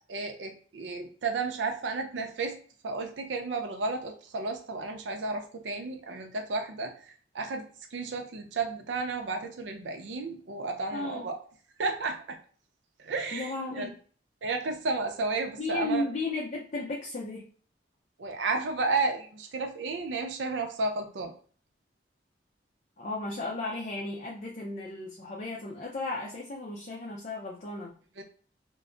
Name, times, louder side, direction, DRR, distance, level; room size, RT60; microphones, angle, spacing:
voice 1, 0.1-2.5 2.8-6.9 7.3-7.7 7.9-11.4 11.8-12.4 13.0-13.5 13.8-13.9 14.4-16.0 18.2-21.3 28.2-28.3, right 3 dB, 85° right, 4 dB, 0.5 m, -32 dB
voice 2, 10.9-11.3 13.3-13.9 15.6-17.4 23.0-27.9, left 2 dB, 40° left, -3 dB, 0.5 m, -34 dB
2.2 x 2.0 x 3.7 m, 0.43 s
head